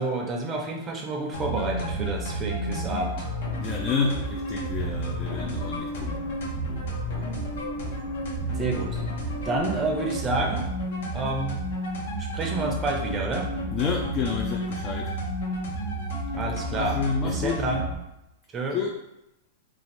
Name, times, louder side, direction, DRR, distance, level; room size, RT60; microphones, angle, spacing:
voice 1, 0.0-3.3 8.5-9.0 9.4-10.7 11.1-11.6 12.3-13.5 16.3-17.0 17.2-17.8 18.5-18.8, right 2 dB, 25° right, 1 dB, 0.5 m, -29 dB
sound 1, 1.3-18.0, right 1 dB, 70° left, 0.8 m, -31 dB
voice 2, 3.6-6.4 13.7-15.2 16.7-17.6 18.7-19.0, left 5 dB, 35° left, 1 dB, 0.3 m, -29 dB
sound 2, 4.5-9.6, right 3 dB, 15° left, 0.8 m, -43 dB
2.5 x 2.4 x 3.2 m, 0.88 s
hypercardioid pair, 110°, 0 cm